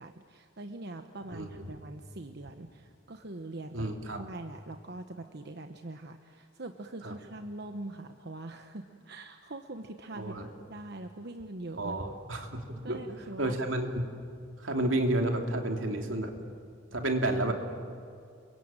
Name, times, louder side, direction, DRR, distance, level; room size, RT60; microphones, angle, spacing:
voice 1, 0.0-10.3 10.7-12.0 12.8-13.6, right 2 dB, 55° right, 6 dB, 1.1 m, -43 dB
voice 2, 1.3-1.8 3.7-4.2 7.0-7.1 10.1-10.5 11.8-13.0 13.4-14.1 14.6-16.3 16.9-17.5, right 1 dB, 80° right, 3 dB, 3.1 m, -31 dB
29.0 x 22.5 x 9.0 m, 2.4 s
head